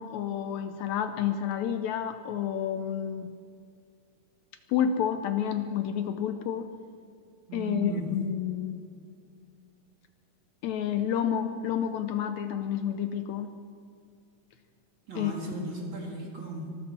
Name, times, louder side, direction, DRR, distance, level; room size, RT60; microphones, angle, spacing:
voice 1, 0.0-3.3 4.7-6.7 7.5-8.8 10.6-13.5 15.2-15.3, left 9 dB, 75° left, 8 dB, 1.9 m, -30 dB
voice 2, 7.5-8.2 15.1-16.7, right 2 dB, 40° right, -1 dB, 2.9 m, -36 dB
24.5 x 14.0 x 4.3 m, 2.3 s
omnidirectional pair, 3.5 m